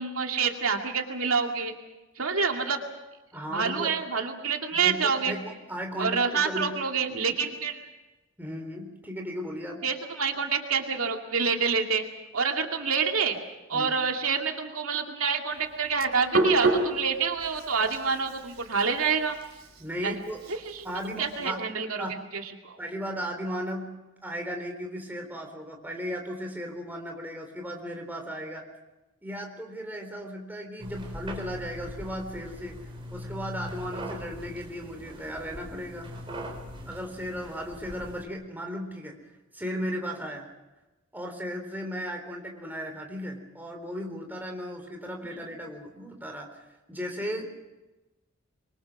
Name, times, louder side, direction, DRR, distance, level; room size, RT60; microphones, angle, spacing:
voice 1, 0.0-1.7 2.2-2.8 3.5-5.3 6.0-7.9 9.8-12.0 12.3-13.4 13.7-19.4 20.0-20.2 20.5-20.9 21.2-22.1 22.3-22.8 45.2-45.5, right 5 dB, 85° right, 3 dB, 2.4 m, -27 dB
voice 2, 3.3-4.0 4.8-6.8 8.4-9.8 13.7-13.9 19.8-20.4 20.8-21.6 22.0-22.2 22.8-28.7 29.2-36.1 36.9-39.1 39.5-40.5 41.1-47.6, equal, 10° right, 2 dB, 3.9 m, -36 dB
Hands, 15.5-21.5, right 2 dB, 50° right, 4.6 m, -30 dB
sound 1, 30.8-38.2, equal, 25° right, 4.9 m, -41 dB
26.5 x 23.5 x 6.1 m, 1.1 s
head